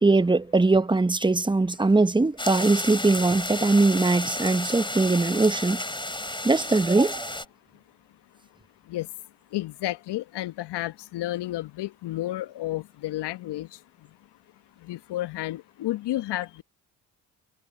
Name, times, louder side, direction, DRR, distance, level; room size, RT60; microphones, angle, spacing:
voice 1, 0.0-5.8 6.4-7.4, right 3 dB, 10° right, 1.0 m, -21 dB
sound 1, 2.4-7.4, left 1 dB, 10° left, 4.5 m, -32 dB
voice 2, 9.5-13.7 14.8-16.6, left 15 dB, 65° left, 1.1 m, -31 dB
hypercardioid pair, 45°, 44 cm